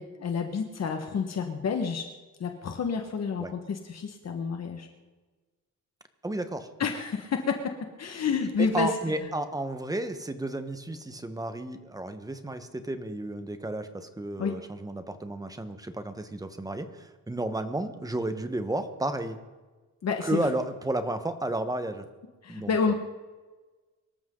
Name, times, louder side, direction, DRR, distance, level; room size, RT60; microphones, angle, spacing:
voice 1, 0.0-2.1 2.4-4.9 6.8-7.7 8.0-9.1 14.4-14.5 20.0-20.5 22.4-22.9, left 5 dB, 55° left, 4 dB, 1.5 m, -29 dB
voice 2, 6.2-6.7 8.6-19.4 20.2-22.1 22.5-22.9, right 1 dB, 10° right, 9 dB, 1.2 m, -32 dB
24.0 x 13.5 x 3.9 m, 1.3 s
wide cardioid pair, 150°, 32 cm